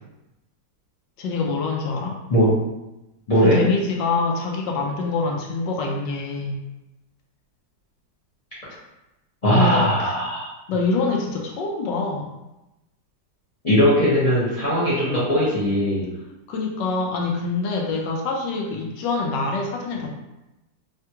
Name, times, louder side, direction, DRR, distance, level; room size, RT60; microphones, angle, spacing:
voice 1, 1.2-2.2 3.4-6.6 9.5-10.1 10.7-12.3 16.5-20.1, left 3 dB, 80° left, 0 dB, 1.2 m, -25 dB
voice 2, 9.4-10.5 13.6-16.1, equal, 40° left, -10 dB, 0.5 m, -19 dB
3.4 x 2.3 x 2.8 m, 0.97 s
omnidirectional pair, 2.0 m